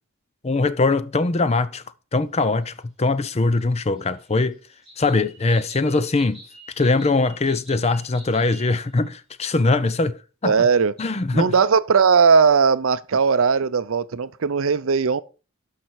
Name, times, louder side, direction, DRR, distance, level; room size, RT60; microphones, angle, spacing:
voice 1, 0.4-1.8 2.1-4.6 5.0-6.4 6.8-10.6 11.0-11.5, left 3 dB, 30° left, 0.5 m, -21 dB
sound 1, 3.6-8.8 9.1-9.2 9.5-9.6, right 1 dB, ahead, 4.5 m, -46 dB
voice 2, 10.4-10.9 11.3-15.2, right 5 dB, 70° right, 0.5 m, -18 dB
12.0 x 5.7 x 4.6 m
head